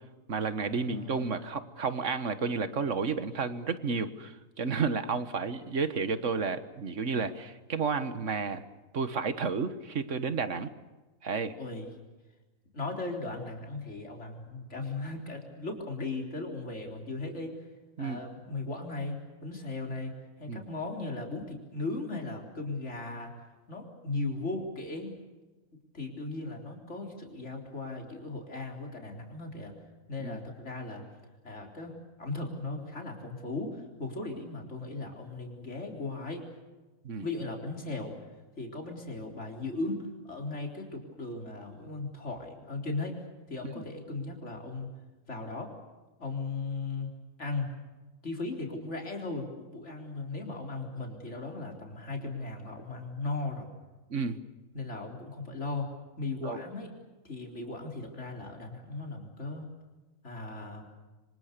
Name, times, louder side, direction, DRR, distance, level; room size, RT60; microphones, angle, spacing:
voice 1, 0.3-8.7 8.9-10.7 11.2-11.6 18.0-18.2 20.5-20.7 30.2-30.4 37.0-37.2 43.7-43.8 54.1-54.4 56.4-56.6, right 5 dB, 60° right, 11 dB, 1.7 m, -31 dB
voice 2, 0.9-1.4 11.6-11.9 12.7-17.6 18.0-20.1 20.4-23.3 23.7-25.1 25.9-29.7 30.1-31.1 31.4-36.5 37.2-38.1 38.6-43.2 43.5-44.9 45.3-45.7 46.2-47.1 47.4-47.7 48.2-53.7 54.7-55.9 56.2-56.9 57.2-59.7 60.2-60.8, left 3 dB, 55° left, 2 dB, 4.3 m, -37 dB
26.5 x 25.5 x 6.7 m, 1.2 s
omnidirectional pair, 1.4 m